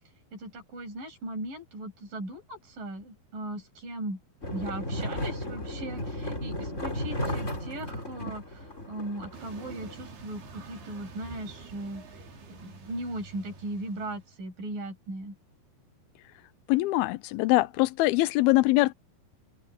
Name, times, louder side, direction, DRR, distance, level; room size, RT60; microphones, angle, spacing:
voice 1, 0.3-4.2 4.5-12.2 12.5-15.4, right 1 dB, 55° right, 8.9 m, -38 dB
sound 1, 4.4-9.9, left 1 dB, 15° left, 5.2 m, -34 dB
sound 2, 9.3-14.4, right 3 dB, 75° right, 6.2 m, -47 dB
voice 2, 16.7-18.9, left 19 dB, 80° left, 2.4 m, -23 dB
open air
omnidirectional pair, 4.7 m